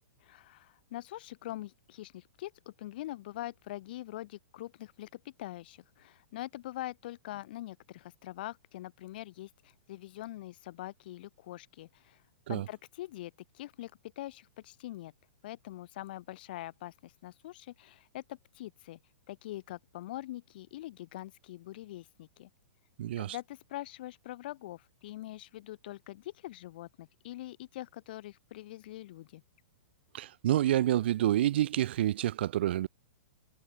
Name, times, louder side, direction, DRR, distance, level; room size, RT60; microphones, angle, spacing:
voice 1, 0.2-12.2 12.5-15.1 15.4-19.0 19.3-22.5 23.2-29.4, left 15 dB, 40° left, 7.3 m, -43 dB
voice 2, 23.0-23.4 30.1-32.9, right 13 dB, 50° right, 2.3 m, -28 dB
hypercardioid pair, 175°, 8 cm